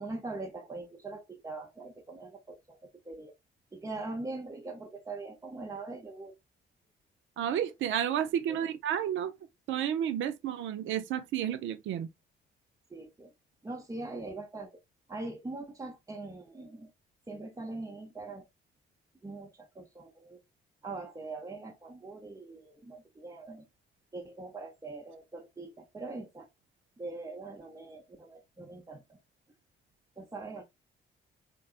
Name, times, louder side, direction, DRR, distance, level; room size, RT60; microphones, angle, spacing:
voice 1, 0.0-3.3 3.7-6.4 8.5-8.7 12.9-13.3 13.6-14.7 15.1-16.9 17.3-18.5 19.2-20.4 20.8-23.7 24.1-26.5 27.0-29.2 30.2-30.6, right 3 dB, 15° right, 0.8 m, -42 dB
voice 2, 7.4-9.3 9.7-12.1, right 10 dB, 75° right, 0.5 m, -31 dB
3.9 x 3.3 x 2.4 m
cardioid pair, 90°, 20 cm